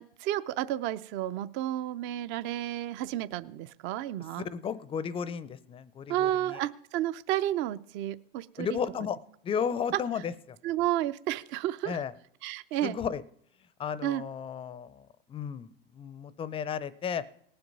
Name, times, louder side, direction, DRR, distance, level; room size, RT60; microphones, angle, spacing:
voice 1, 0.0-4.4 6.1-8.8 9.9-10.0 10.6-12.0 12.4-13.0 14.0-14.2, right 13 dB, 40° right, 15 dB, 0.6 m, -31 dB
voice 2, 4.5-6.6 8.6-9.2 9.4-10.6 11.9-12.1 12.8-13.2 13.8-17.2, left 7 dB, 20° left, 18 dB, 0.5 m, -34 dB
18.5 x 7.9 x 5.4 m, 0.68 s
supercardioid pair, 125°, 30 cm